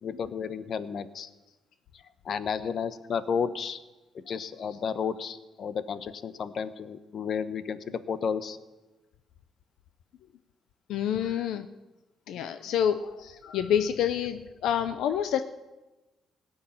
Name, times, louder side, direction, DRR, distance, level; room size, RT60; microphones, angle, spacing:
voice 1, 0.0-1.3 2.2-3.8 4.3-8.6 11.2-11.5 13.4-13.7, left 6 dB, 55° left, 12 dB, 1.0 m, -32 dB
voice 2, 10.9-11.7 12.3-15.4, left 9 dB, 85° left, 9 dB, 0.6 m, -28 dB
17.5 x 6.5 x 9.9 m, 1.1 s
cardioid pair, 90°, 0 cm